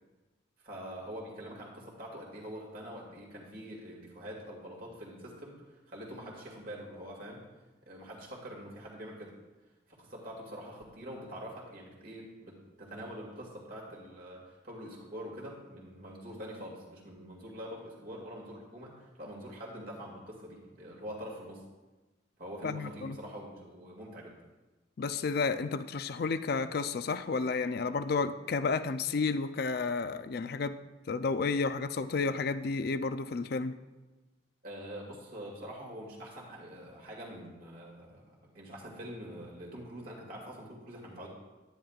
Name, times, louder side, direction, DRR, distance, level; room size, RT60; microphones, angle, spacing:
voice 1, 0.6-7.4 7.9-9.3 9.9-21.6 22.4-24.4 34.6-41.3, equal, 50° right, -2 dB, 2.2 m, -45 dB
voice 2, 22.6-23.2 25.0-30.8 31.1-33.8, left 4 dB, 55° left, 12 dB, 0.4 m, -31 dB
10.5 x 10.5 x 2.4 m, 1.2 s
head